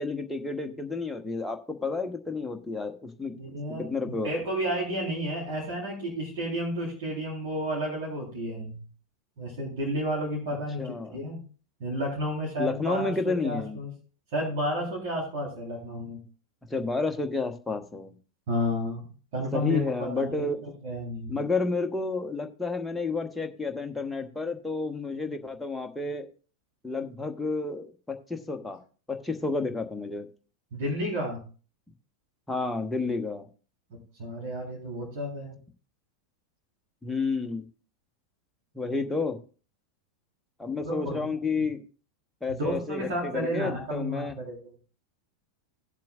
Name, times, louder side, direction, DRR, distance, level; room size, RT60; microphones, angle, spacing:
voice 1, 0.0-3.3 3.8-4.3 10.8-11.2 12.6-13.8 16.7-18.1 19.5-20.6 21.3-26.3 26.8-28.8 29.1-30.3 32.5-33.5 37.0-37.6 38.7-39.4 40.6-41.8 42.4-44.4, left 3 dB, 5° left, 4 dB, 1.1 m, -30 dB
voice 2, 3.4-3.9 4.2-8.8 9.4-10.8 11.1-11.4 11.8-13.9 14.3-16.2 18.5-19.0 19.3-21.3 30.7-31.4 33.9-35.5 40.8-41.2 42.5-44.6, equal, 50° right, -4 dB, 3.9 m, -31 dB
18.0 x 7.5 x 2.5 m, 0.38 s
figure-of-eight pair, 90°, 0 cm